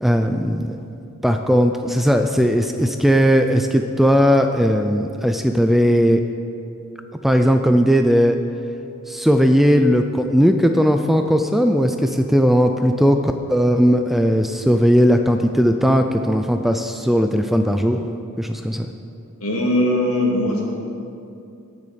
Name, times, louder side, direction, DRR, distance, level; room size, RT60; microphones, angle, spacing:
voice 1, 0.0-0.8 1.2-6.2 7.2-8.4 9.1-18.1 18.4-18.9, equal, ahead, 5 dB, 0.3 m, -17 dB
voice 2, 19.4-20.6, left 1 dB, 80° left, -2 dB, 2.4 m, -20 dB
18.0 x 6.7 x 5.1 m, 2.6 s
head